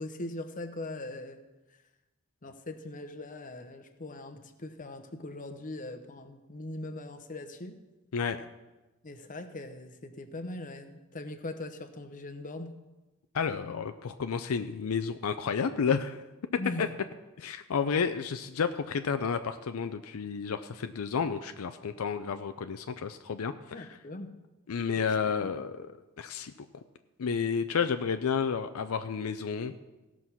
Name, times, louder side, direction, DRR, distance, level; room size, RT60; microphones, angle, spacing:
voice 1, 0.0-1.4 2.4-7.8 9.0-12.7 16.6-16.9 23.7-24.3 25.4-25.5, left 2 dB, 35° left, 8 dB, 0.9 m, -40 dB
voice 2, 8.1-8.5 13.3-16.2 16.8-16.9 17.4-23.9 24.7-25.9 26.2-26.7 27.2-29.7, left 6 dB, 70° left, 9 dB, 0.5 m, -31 dB
16.5 x 6.1 x 5.6 m, 1.1 s
head